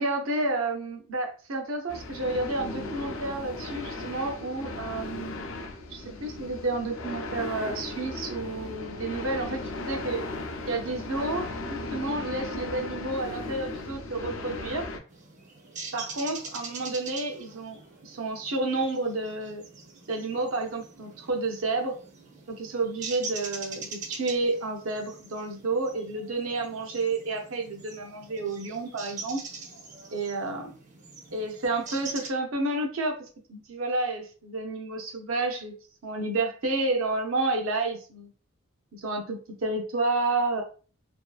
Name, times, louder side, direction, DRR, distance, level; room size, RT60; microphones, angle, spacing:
voice 1, 0.0-5.6 5.9-9.6 9.9-10.2 10.7-14.9 15.9-19.6 20.1-21.9 22.5-29.4 30.1-30.7 31.3-33.1 33.5-35.7 36.0-38.3 38.9-40.6, right 2 dB, 90° right, 3 dB, 0.6 m, -30 dB
sound 1, 1.9-15.0, left 2 dB, 75° left, 0.4 m, -36 dB
sound 2, 15.1-32.3, right 4 dB, 35° right, 0.5 m, -43 dB
2.6 x 2.3 x 2.2 m, 0.39 s
head